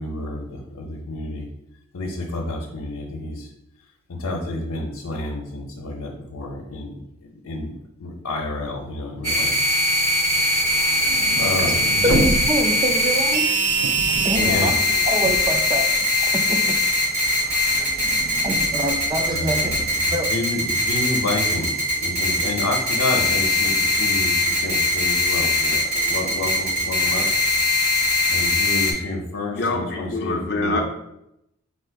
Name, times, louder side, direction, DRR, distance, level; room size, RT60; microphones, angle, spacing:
voice 1, 0.0-1.5 1.9-3.5 4.1-7.0 7.3-7.7 8.0-9.5 11.4-12.1 14.4-14.8 19.3-21.7 22.0-27.3 28.3-30.8, left 2 dB, 85° left, 0 dB, 0.7 m, -29 dB
sound 1, 9.2-28.9, left 1 dB, 35° right, 1.1 m, -21 dB
sound 2, 10.4-16.4 16.8-20.1, right 1 dB, 80° right, 0.5 m, -31 dB
voice 2, 12.0-13.6 14.2-14.8 15.1-16.8 18.4-19.7 20.1-20.3, right 1 dB, 20° right, 4 dB, 0.4 m, -26 dB
voice 3, 29.5-30.8, left 2 dB, 50° left, 1 dB, 0.5 m, -25 dB
4.2 x 2.5 x 4.5 m, 0.82 s
head